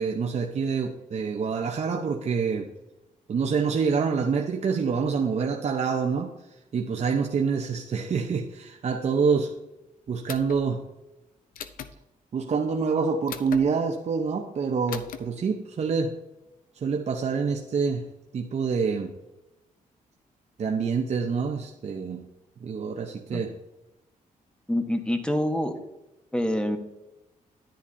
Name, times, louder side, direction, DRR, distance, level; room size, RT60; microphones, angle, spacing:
voice 1, 0.0-2.7 3.3-6.3 6.7-9.5 10.1-10.8 12.3-16.2 16.8-18.1 18.3-19.1 20.6-22.3 22.6-23.6, right 5 dB, 50° right, 2 dB, 0.9 m, -26 dB
sound 1, 10.3-10.6 11.5-11.9 13.3-13.6 14.9-15.2, left 8 dB, 80° left, 0.6 m, -37 dB
voice 2, 24.7-25.7 26.3-26.8, left 1 dB, 5° left, 6 dB, 1.3 m, -26 dB
10.5 x 10.0 x 2.8 m, 0.94 s
cardioid pair, 85°, 14 cm